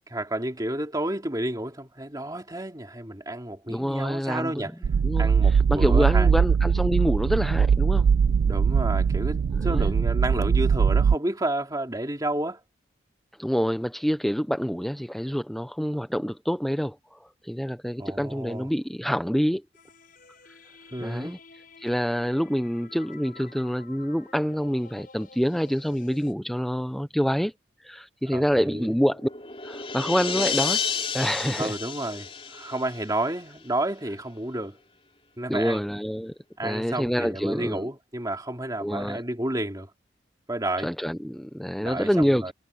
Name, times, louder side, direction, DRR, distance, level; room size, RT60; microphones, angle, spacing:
voice 1, 0.1-4.7 5.2-6.3 8.4-12.6 18.0-18.7 20.9-21.3 28.3-29.0 31.6-34.8 35.4-35.8 36.6-39.9 40.5-40.9 41.8-42.5, right 1 dB, 20° right, 2.6 m, -31 dB
voice 2, 3.7-4.6 5.0-8.1 9.5-10.0 13.4-19.6 21.0-21.4 21.8-27.5 27.8-29.3 29.6-30.8 31.1-31.7 35.5-36.3 36.6-37.9 38.8-39.2 40.8-42.5, equal, ahead, 0.5 m, -27 dB
sound 1, 4.8-11.2, right 6 dB, 75° right, 0.3 m, -21 dB
sound 2, 19.7-26.3, left 4 dB, 50° left, 6.8 m, -51 dB
sound 3, 28.9-33.5, left 6 dB, 30° left, 2.9 m, -31 dB
head